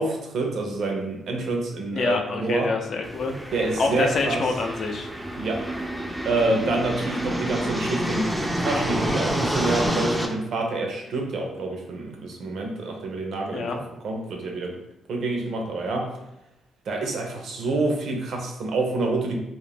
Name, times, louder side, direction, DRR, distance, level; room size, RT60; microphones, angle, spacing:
voice 1, 0.0-2.7 3.5-4.4 5.4-5.6 6.2-13.7 14.0-14.8 15.1-16.1 16.9-19.3, right 2 dB, 70° right, 2 dB, 0.6 m, -27 dB
voice 2, 1.9-3.3 3.8-5.1 13.5-13.8, left 4 dB, 60° left, 3 dB, 0.4 m, -26 dB
sound 1, 3.0-10.3, equal, 5° right, 0.4 m, -28 dB
2.4 x 2.0 x 3.3 m, 0.90 s
cardioid pair, 90°, 0 cm